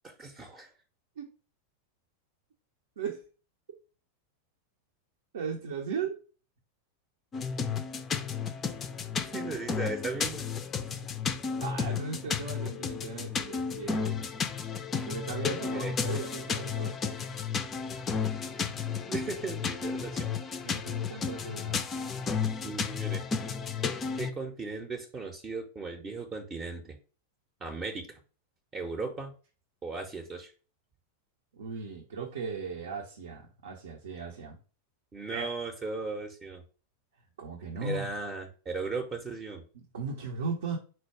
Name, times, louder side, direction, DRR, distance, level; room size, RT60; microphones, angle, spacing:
voice 1, 0.0-0.7 9.3-10.4 10.9-11.0 15.6-15.9 19.1-20.3 22.6-23.2 24.2-27.0 27.6-28.2 28.7-29.3 29.8-30.5 35.1-36.6 37.8-39.6, right 4 dB, 20° right, 4 dB, 0.7 m, -37 dB
voice 2, 5.3-6.2 11.6-14.3 14.9-17.0 20.6-21.8 31.5-34.6 35.3-35.5 37.4-38.1 39.7-40.8, right 5 dB, 60° right, 1 dB, 0.7 m, -37 dB
sound 1, 7.3-24.3, left 6 dB, 25° left, 0.4 m, -33 dB
4.4 x 2.2 x 4.6 m, 0.36 s
figure-of-eight pair, 90°, 0 cm